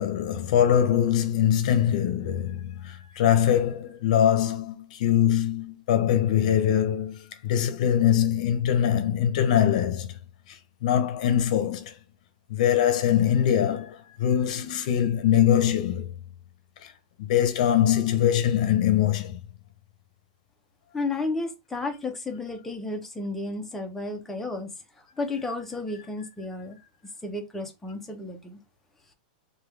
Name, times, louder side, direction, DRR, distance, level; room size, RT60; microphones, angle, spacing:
voice 1, 0.0-7.2 7.4-10.1 10.8-11.9 12.5-16.1 17.3-19.4, left 10 dB, 55° left, 0.7 m, -23 dB
voice 2, 20.9-24.7 25.2-26.8 27.2-28.6, left 2 dB, 5° left, 0.5 m, -32 dB
3.1 x 2.3 x 3.3 m
supercardioid pair, 165°, 5 cm